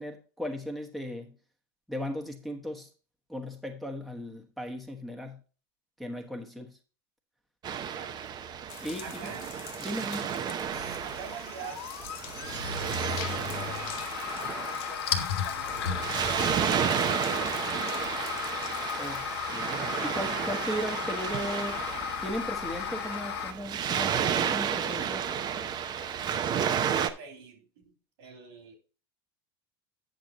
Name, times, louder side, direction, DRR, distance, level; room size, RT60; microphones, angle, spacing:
voice 1, 0.0-1.3 1.9-2.9 3.3-5.4 6.0-6.8 8.8-9.3 9.8-10.3 19.0-19.3 19.5-21.8 22.2-25.3, equal, ahead, 1 dB, 1.1 m, -37 dB
Waves surf, 7.6-27.1, right 8 dB, 35° right, 0.7 m, -32 dB
sound 1, 8.7-19.4, left 12 dB, 65° left, 0.9 m, -47 dB
voice 2, 9.0-9.4 11.0-11.8 12.7-14.1 14.6-17.6 26.2-28.7, right 6 dB, 85° right, 4 dB, 3.2 m, -46 dB
sound 2, 10.6-23.5, left 8 dB, 85° left, 1.2 m, -35 dB
9.2 x 6.1 x 4.0 m, 0.37 s
supercardioid pair, 120°, 13 cm